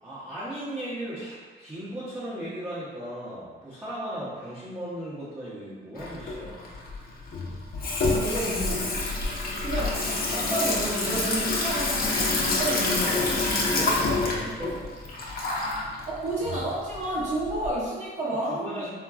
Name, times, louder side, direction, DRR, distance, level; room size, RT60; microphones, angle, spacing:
voice 1, 0.0-6.8 13.1-14.9 18.5-18.9, equal, 15° right, -13 dB, 0.9 m, -36 dB
Water tap faucet / Sink (filling or washing), 6.0-17.7, left 3 dB, 50° left, 0.7 m, -27 dB
voice 2, 8.0-8.9 9.6-13.3 16.1-18.9, right 1 dB, 35° right, -8 dB, 0.9 m, -31 dB
3.6 x 2.2 x 2.4 m, 1.5 s
cardioid pair, 90°, 20 cm